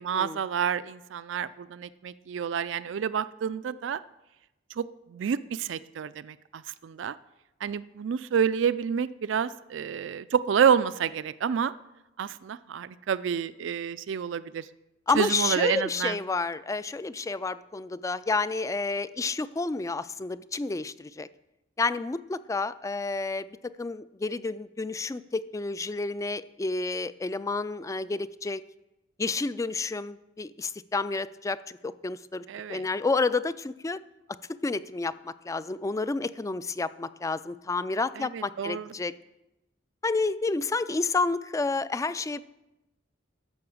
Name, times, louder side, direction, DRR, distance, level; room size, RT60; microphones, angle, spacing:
voice 1, 0.0-4.0 4.7-7.1 7.6-11.7 12.2-14.7 15.2-16.2 32.5-32.9 38.2-38.9, right 7 dB, 70° right, 15 dB, 0.4 m, -29 dB
voice 2, 15.1-21.3 21.8-28.6 29.2-34.0 34.5-39.1 40.0-42.4, left 3 dB, 15° left, 16 dB, 0.3 m, -30 dB
11.5 x 6.8 x 7.1 m, 0.96 s
head